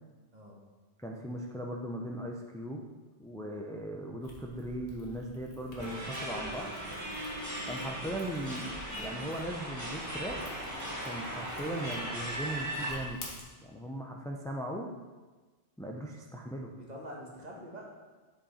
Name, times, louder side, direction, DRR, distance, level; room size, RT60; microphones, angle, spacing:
voice 1, 1.0-2.8 3.2-6.7 7.6-10.4 11.0-13.2 13.6-14.9 15.8-16.7, right 1 dB, 5° left, 0 dB, 0.3 m, -38 dB
sound 1, 4.2-13.4, left 1 dB, 70° left, 1.7 m, -50 dB
sound 2, 5.8-12.9, right 1 dB, 15° right, 1.6 m, -38 dB
voice 2, 16.8-17.9, equal, 35° right, -2 dB, 1.4 m, -45 dB
7.5 x 5.7 x 4.2 m, 1.3 s
omnidirectional pair, 1.2 m